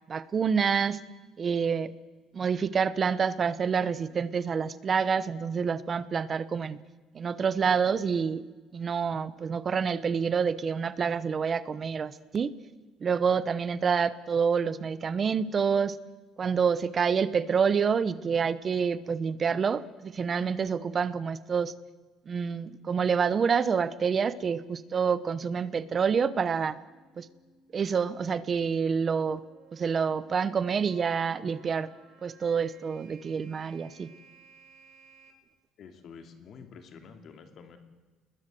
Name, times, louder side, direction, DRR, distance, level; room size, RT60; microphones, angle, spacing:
voice 1, 0.1-1.0 1.4-1.9 2.3-6.8 7.1-8.4 8.7-12.5 13.0-15.9 16.4-21.7 22.3-26.8 27.2-27.3 27.7-29.4 29.7-31.9 32.2-34.1, right 6 dB, 30° right, 16 dB, 0.9 m, -27 dB
sound 1, 25.7-35.3, right 4 dB, 65° right, 4.3 m, -59 dB
voice 2, 35.8-37.8, left 6 dB, 50° left, 6 dB, 2.9 m, -48 dB
28.5 x 21.0 x 7.7 m, 1.3 s
cardioid pair, 155°, 0 cm